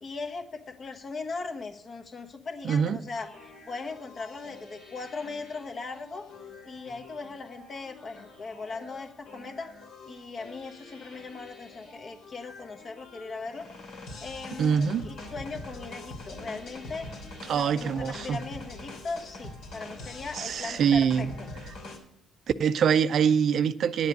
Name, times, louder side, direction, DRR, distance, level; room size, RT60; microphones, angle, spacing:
voice 1, 0.0-6.3 6.6-9.7 10.1-13.7 14.2-14.7 15.0-17.1 17.5-21.3, left 4 dB, 50° left, 1.2 m, -39 dB
voice 2, 2.6-3.0 14.6-15.0 17.5-18.4 20.3-21.3 22.6-24.1, right 7 dB, 65° right, 0.5 m, -24 dB
sound 1, 3.1-22.0, left 2 dB, 85° left, 3.0 m, -45 dB
10.5 x 8.0 x 5.3 m
cardioid pair, 90°, 0 cm